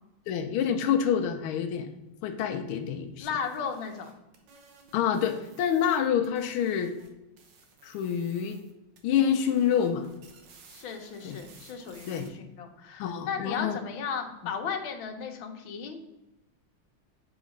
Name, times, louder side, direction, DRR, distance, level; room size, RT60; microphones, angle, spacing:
voice 1, 0.3-1.9 2.2-3.3 4.9-6.9 7.8-8.6 9.0-10.1 11.2-11.4 12.1-12.3 13.0-13.8, left 8 dB, 90° left, 6 dB, 1.5 m, -27 dB
voice 2, 3.2-4.1 10.7-16.1, left 6 dB, 75° left, 4 dB, 1.6 m, -35 dB
sound 1, 3.2-7.1 7.4-8.7 9.0-12.3, right 4 dB, 65° right, 1.6 m, -55 dB
7.2 x 3.9 x 5.1 m, 0.99 s
omnidirectional pair, 2.2 m